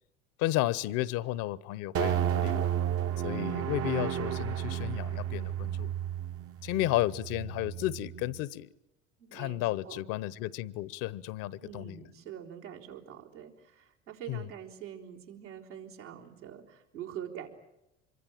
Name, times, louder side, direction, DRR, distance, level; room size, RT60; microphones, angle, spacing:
voice 1, 0.4-2.7 3.2-5.9 6.6-8.7 9.3-12.0 14.3-14.4, left 16 dB, 65° left, 1.1 m, -33 dB
sound 1, 1.9-8.4, right 10 dB, 40° right, 1.0 m, -32 dB
voice 2, 9.2-10.0 11.6-17.5, right 10 dB, 85° right, 4.3 m, -45 dB
26.0 x 23.5 x 8.9 m
hypercardioid pair, 75°, 35 cm